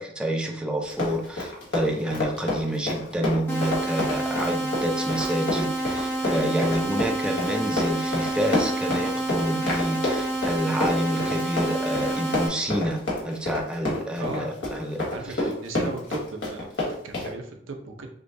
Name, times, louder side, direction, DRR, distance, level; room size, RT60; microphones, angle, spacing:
voice 1, 0.0-15.4 15.7-15.9, right 1 dB, 5° right, 1 dB, 0.4 m, -28 dB
Run, 0.8-17.3, left 2 dB, 60° left, 1.5 m, -28 dB
sound 1, 3.5-12.5, right 1 dB, 10° left, 0.8 m, -28 dB
voice 2, 14.2-14.7 15.1-18.1, right 3 dB, 75° right, 3 dB, 0.6 m, -37 dB
6.2 x 2.3 x 2.6 m, 0.67 s
head